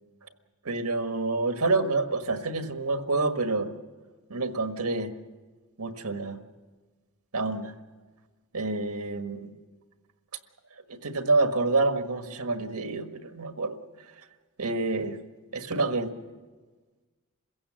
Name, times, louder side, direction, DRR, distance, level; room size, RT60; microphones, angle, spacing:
voice 1, 0.6-3.7 4.3-5.1 5.8-6.4 7.3-7.7 8.5-9.5 10.9-13.8 14.6-15.2 15.5-16.1, right 3 dB, 85° right, 7 dB, 1.5 m, -27 dB
27.0 x 16.0 x 7.6 m, 1.4 s
head